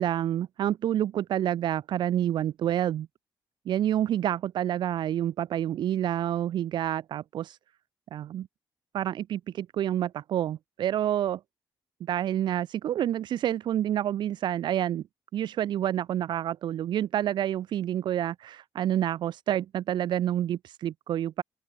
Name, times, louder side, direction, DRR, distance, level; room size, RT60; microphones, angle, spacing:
voice 1, 0.0-3.1 3.7-7.6 8.1-8.5 8.9-11.4 12.0-15.0 15.3-21.4, right 11 dB, 65° right, 0.4 m, -28 dB
open air
cardioid pair, 125°, 8 cm